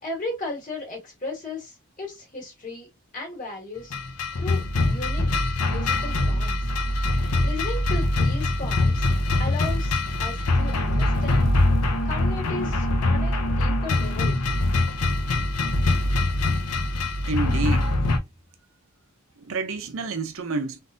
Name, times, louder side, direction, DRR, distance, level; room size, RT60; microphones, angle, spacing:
voice 1, 0.0-2.9 3.1-3.9 4.4-5.3 5.6-6.7 7.4-9.1 9.4-11.5 12.0-14.4, left 2 dB, 35° left, 1.8 m, -36 dB
sound 1, 3.9-18.2, left 2 dB, 90° left, 0.7 m, -23 dB
voice 2, 17.3-17.9 19.4-20.8, right 3 dB, 65° right, 0.6 m, -28 dB
3.6 x 2.6 x 2.4 m
head